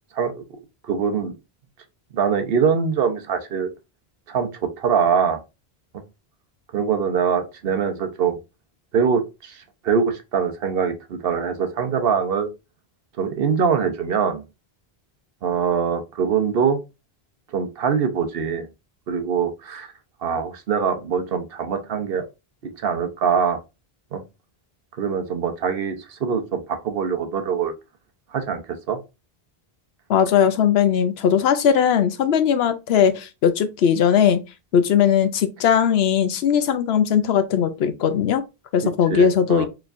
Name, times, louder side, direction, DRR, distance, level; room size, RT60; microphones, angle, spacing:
voice 1, 0.9-1.4 2.1-3.7 4.3-5.4 6.7-8.3 8.9-12.5 13.2-14.4 15.4-16.8 17.5-18.7 19.1-19.9 20.2-22.3 22.8-23.6 24.1-24.2 25.0-27.7 28.3-29.0 39.1-39.7, right 6 dB, 65° right, 0.9 m, -23 dB
voice 2, 30.1-34.4 34.7-38.4 38.7-39.7, left 8 dB, 80° left, 0.9 m, -19 dB
4.7 x 3.2 x 2.5 m
omnidirectional pair, 1.0 m